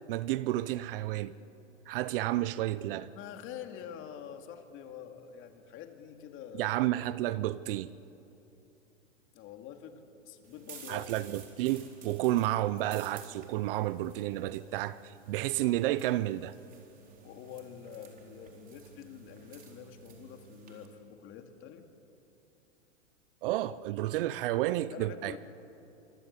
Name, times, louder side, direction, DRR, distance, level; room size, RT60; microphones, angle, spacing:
voice 1, 0.1-1.3 1.9-3.1 6.6-7.9 10.9-16.5 23.4-25.4, right 15 dB, 50° right, 0.7 m, -31 dB
voice 2, 3.1-6.7 9.3-11.1 17.2-21.8 24.9-25.4, left 9 dB, 35° left, 2.5 m, -46 dB
sound 1, 10.4-20.9, right 7 dB, 20° right, 4.2 m, -53 dB
25.0 x 25.0 x 8.3 m
hypercardioid pair, 135°, 37 cm